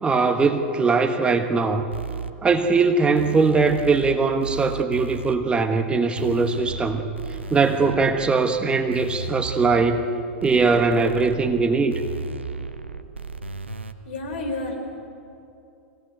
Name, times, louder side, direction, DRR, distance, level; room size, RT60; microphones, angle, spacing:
voice 1, 0.0-1.9 2.4-7.0 7.5-10.0 10.4-12.0, right 4 dB, 15° right, 6 dB, 1.3 m, -21 dB
sound 1, 1.9-2.3 3.2-4.1 4.4-5.4 6.2-8.3 8.9-10.0 10.4-11.4 11.9-13.9, right 3 dB, 85° right, 1.1 m, -34 dB
voice 2, 14.0-14.8, left 2 dB, 65° left, 2 dB, 4.9 m, -30 dB
24.5 x 18.0 x 9.0 m, 2.7 s
figure-of-eight pair, 95°, 6 cm